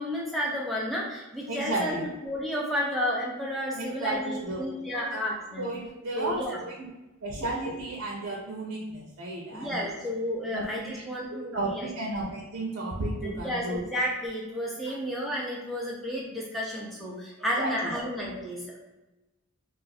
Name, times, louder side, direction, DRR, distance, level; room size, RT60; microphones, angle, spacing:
voice 1, 0.0-2.0 2.2-5.7 6.1-6.6 9.5-11.9 13.2-18.7, equal, ahead, -4 dB, 0.6 m, -32 dB
voice 2, 1.5-2.0 3.7-5.0 5.6-6.4 6.8-6.9 7.2-9.9 10.5-10.9 11.3-13.8 17.6-17.9, right 2 dB, 60° right, -3 dB, 0.6 m, -33 dB
2.5 x 2.5 x 4.0 m, 1.0 s
head